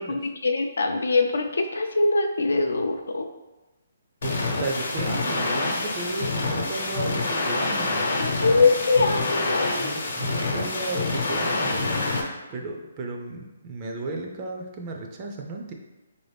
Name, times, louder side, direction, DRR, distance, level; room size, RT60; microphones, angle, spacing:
voice 1, 0.1-3.3 8.2-10.0, left 3 dB, 90° left, 4 dB, 0.4 m, -23 dB
sound 1, 4.2-12.2, left 2 dB, 60° left, 0.8 m, -27 dB
voice 2, 4.2-8.1 9.8-11.9 12.5-15.7, right 3 dB, 25° right, 1 dB, 0.3 m, -34 dB
4.0 x 2.6 x 3.3 m, 1.1 s
hypercardioid pair, 170°, 0 cm